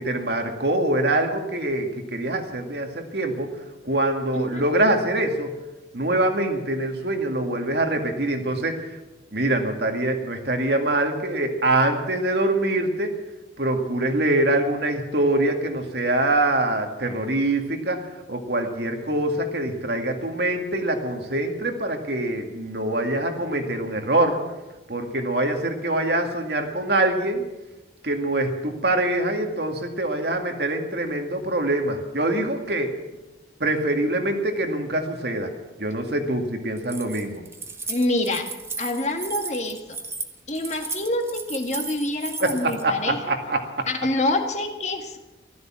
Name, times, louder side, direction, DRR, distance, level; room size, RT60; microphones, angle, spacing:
voice 1, 0.0-3.5 3.8-5.5 5.9-8.9 9.3-13.2 13.6-24.4 24.9-27.5 28.0-32.9 33.6-35.5 35.8-37.4 42.4-43.9, right 1 dB, 60° right, 4 dB, 2.1 m, -24 dB
voice 2, 4.3-4.6 37.9-38.5 38.8-40.0 40.5-43.3 43.9-45.2, left 2 dB, 40° left, 4 dB, 1.7 m, -26 dB
Keys jangling, 36.8-42.8, right 4 dB, 15° right, 1.1 m, -35 dB
14.5 x 13.0 x 7.4 m, 1.1 s
head